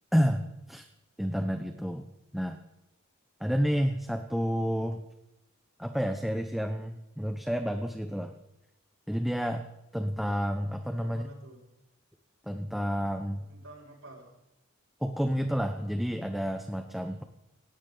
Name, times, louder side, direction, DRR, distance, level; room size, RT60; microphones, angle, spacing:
voice 1, 0.1-0.8 1.2-2.1 2.3-2.6 3.4-5.0 5.8-8.3 9.1-9.6 9.9-11.3 12.5-13.4 15.0-17.2, equal, ahead, 6 dB, 0.9 m, -30 dB
voice 2, 11.0-11.6 13.5-14.3, right 1 dB, 80° right, -4 dB, 6.2 m, -49 dB
19.0 x 16.5 x 4.0 m, 0.89 s
head